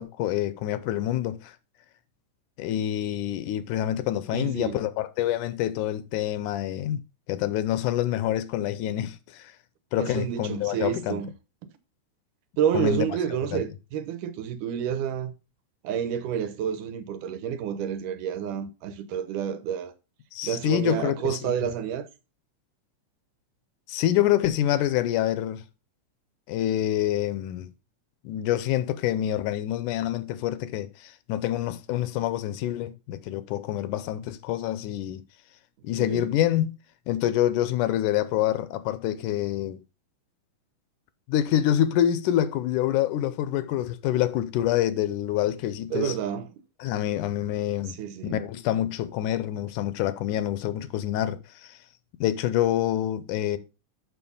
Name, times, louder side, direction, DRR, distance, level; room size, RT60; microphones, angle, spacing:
voice 1, 0.0-1.6 2.6-7.0 7.3-9.5 9.9-11.2 12.7-13.2 13.5-13.6 20.3-21.5 23.9-25.6 26.5-27.7 28.2-35.2 35.8-36.8 37.1-39.8 41.3-46.2 46.8-48.0 48.2-51.8 52.2-53.6, left 12 dB, 80° left, 2.2 m, -26 dB
voice 2, 4.3-4.8 10.0-11.3 12.6-15.3 15.8-19.9 20.4-22.1 36.0-36.3 45.9-46.5 48.0-48.4, right 9 dB, 80° right, 2.5 m, -29 dB
7.0 x 6.3 x 5.4 m
omnidirectional pair, 3.6 m